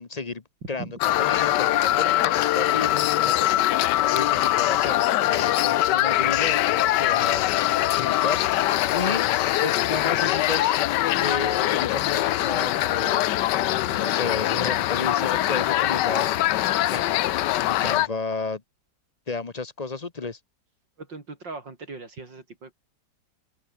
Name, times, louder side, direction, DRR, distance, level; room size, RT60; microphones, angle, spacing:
voice 1, 0.0-7.4 7.9-8.4 8.9-9.2 9.6-10.8 11.2-13.4 13.7-16.3 16.9-17.2 17.7-18.6 19.3-20.4, left 4 dB, 30° left, 0.9 m, -33 dB
sound 1, 1.0-18.1, left 14 dB, 75° left, 1.3 m, -22 dB
voice 2, 21.0-22.7, right 3 dB, 80° right, 5.1 m, -39 dB
omnidirectional pair, 2.0 m